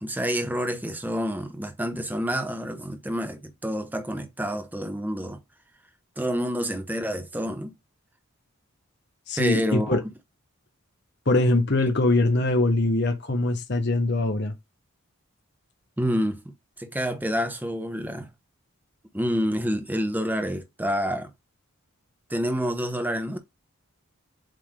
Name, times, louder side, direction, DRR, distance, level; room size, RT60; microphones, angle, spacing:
voice 1, 0.0-5.4 6.2-7.7 9.4-10.0 16.0-18.3 19.1-21.3 22.3-23.4, equal, 10° right, 0.9 m, -28 dB
voice 2, 9.3-10.0 11.3-14.5, left 2 dB, 50° left, 1.1 m, -22 dB
7.6 x 3.3 x 3.7 m
head